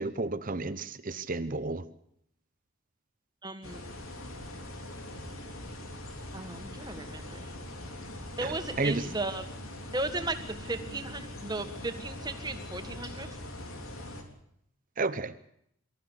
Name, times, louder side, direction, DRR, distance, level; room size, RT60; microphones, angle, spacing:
voice 1, 0.0-1.8 8.4-9.1 15.0-15.3, right 3 dB, 40° right, 0.9 m, -32 dB
voice 2, 3.4-3.8 6.3-7.5 8.4-9.4 9.9-13.3, right 2 dB, 20° right, 1.7 m, -35 dB
sound 1, 3.6-14.2, left 1 dB, 80° left, 3.7 m, -42 dB
24.0 x 14.0 x 8.2 m
head